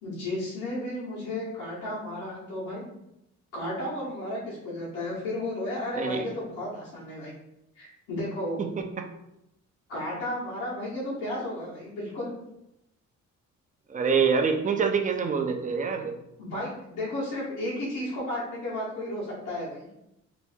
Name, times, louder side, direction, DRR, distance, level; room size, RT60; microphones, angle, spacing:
voice 1, 0.0-2.8 3.5-7.3 7.7-8.6 9.9-12.3 16.4-19.9, left 1 dB, 85° left, -9 dB, 1.3 m, -33 dB
voice 2, 6.0-6.3 8.6-9.1 13.9-16.1, right 5 dB, 25° right, 5 dB, 0.5 m, -26 dB
3.0 x 2.6 x 3.4 m, 0.86 s
cardioid pair, 90°, 30 cm